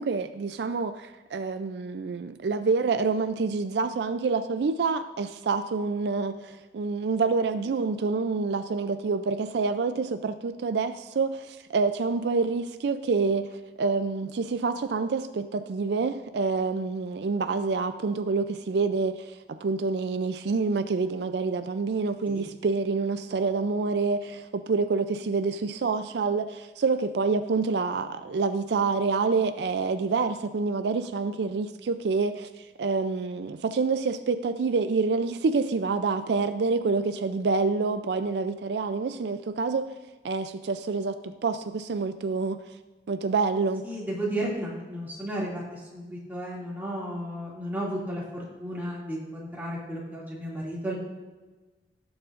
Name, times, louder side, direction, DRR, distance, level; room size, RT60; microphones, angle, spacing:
voice 1, 0.0-39.9 40.2-42.6 43.1-43.8, right 4 dB, 75° right, 10 dB, 0.4 m, -27 dB
voice 2, 43.8-51.0, right 1 dB, 10° right, -6 dB, 2.3 m, -33 dB
16.5 x 7.1 x 2.5 m, 1.2 s
head